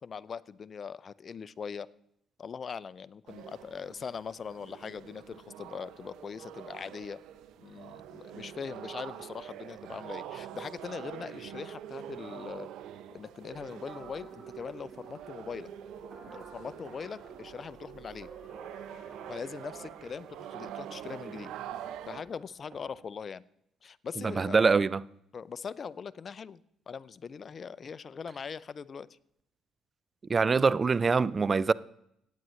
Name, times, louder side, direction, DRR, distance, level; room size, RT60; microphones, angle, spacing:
voice 1, 0.0-1.9 2.4-7.2 7.6-12.7 13.1-15.7 16.3-18.3 19.3-21.5 22.1-23.4 23.8-24.6 25.3-26.6 26.9-29.1, left 6 dB, 45° left, 0.5 m, -41 dB
sound 1, 3.3-22.2, right 10 dB, 75° right, 0.6 m, -45 dB
sound 2, 13.4-23.0, right 4 dB, 55° right, 4.1 m, -52 dB
voice 2, 24.2-25.0 30.3-31.7, right 4 dB, 35° right, 0.4 m, -24 dB
17.5 x 9.2 x 3.2 m
supercardioid pair, 60°, 0 cm